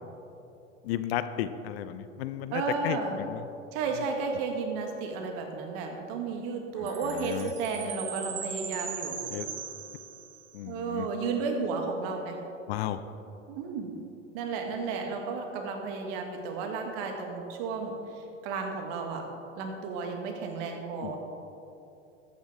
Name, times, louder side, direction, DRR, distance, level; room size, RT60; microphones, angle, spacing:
voice 1, 0.8-3.4 6.8-7.5 9.3-9.5 10.5-11.1 12.7-13.0 21.0-21.2, left 12 dB, 50° left, 12 dB, 0.6 m, -34 dB
voice 2, 2.5-3.2 3.7-9.2 10.7-12.4 13.5-13.9 14.3-19.2 19.6-21.2, right 4 dB, 50° right, 3 dB, 1.9 m, -33 dB
Chime, 6.9-10.6, right 7 dB, 30° right, 1.3 m, -39 dB
13.5 x 9.0 x 3.8 m, 2.8 s
hypercardioid pair, 95°, 39 cm